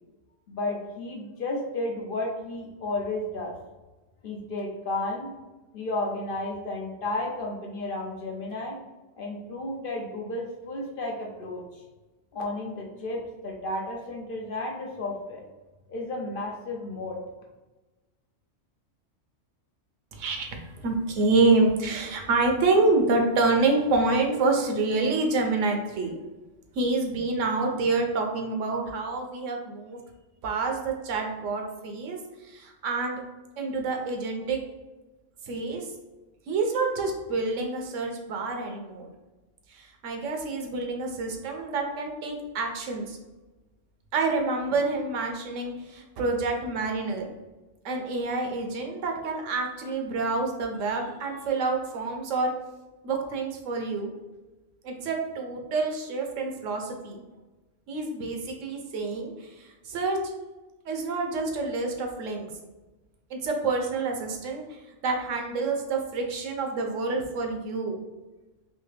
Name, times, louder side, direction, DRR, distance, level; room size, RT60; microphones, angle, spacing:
voice 1, 0.5-3.5 4.2-5.3 5.7-8.8 9.2-11.6 12.3-15.4 15.9-17.2, left 2 dB, 55° left, -1 dB, 0.7 m, -32 dB
voice 2, 20.1-20.6 20.8-26.2 26.8-30.0 30.4-32.2 32.5-33.2 33.6-34.6 35.5-35.9 36.5-39.1 39.7-43.2 44.1-47.3 47.8-52.5 53.0-54.1 54.8-57.2 57.9-59.3 59.9-60.2 60.9-62.5 63.3-64.6 65.0-67.9, right 3 dB, 90° right, 3 dB, 1.0 m, -27 dB
3.3 x 2.7 x 3.2 m, 1.1 s
omnidirectional pair, 1.3 m